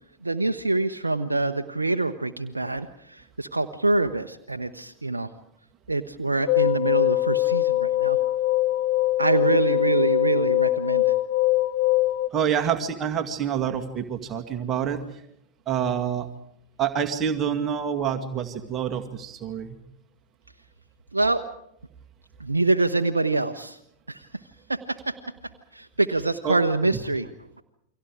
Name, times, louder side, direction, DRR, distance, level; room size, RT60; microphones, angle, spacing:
voice 1, 0.2-5.3 5.9-8.2 9.2-11.2 21.1-21.4 22.4-23.8 24.1-24.3 24.7-25.2 25.7-27.3, right 2 dB, 80° right, 7 dB, 0.9 m, -25 dB
sound 1, 6.5-12.3, left 16 dB, 50° left, 1.1 m, -22 dB
voice 2, 12.3-15.0 15.7-16.3 16.8-19.8 26.4-26.6, right 8 dB, 25° right, 4 dB, 2.1 m, -27 dB
29.0 x 24.0 x 4.9 m, 0.77 s
figure-of-eight pair, 90°, 0 cm